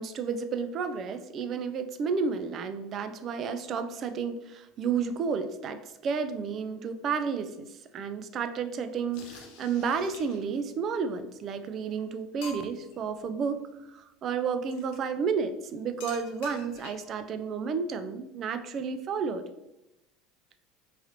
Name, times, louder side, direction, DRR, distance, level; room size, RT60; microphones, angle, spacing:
voice 1, 0.0-7.7 7.9-13.6 13.9-19.5, right 5 dB, 40° right, 10 dB, 0.3 m, -31 dB
sound 1, 9.1-10.6 11.5-11.6 12.0-12.1 12.4-13.0 14.7-15.0 16.0-17.2, left 4 dB, 75° left, 0.6 m, -46 dB
3.1 x 2.5 x 2.8 m, 0.93 s
supercardioid pair, 110°, 0 cm